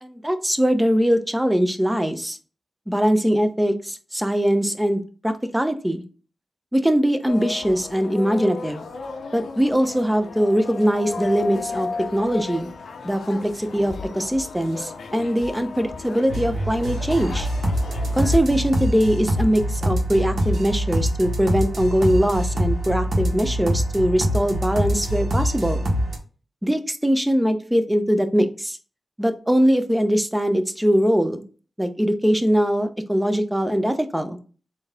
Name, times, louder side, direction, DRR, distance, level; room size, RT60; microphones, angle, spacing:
voice 1, 0.0-2.4 2.9-6.0 6.7-8.9 9.3-12.7 13.0-17.5 18.1-25.8 26.6-28.8 29.2-31.4 31.8-34.4, equal, 10° right, 8 dB, 0.6 m, -21 dB
sound 1, 7.3-18.4, left 4 dB, 80° left, 0.5 m, -34 dB
sound 2, 16.3-26.2, equal, 70° right, 1.3 m, -24 dB
3.8 x 2.7 x 3.5 m, 0.38 s
cardioid pair, 60°, 0 cm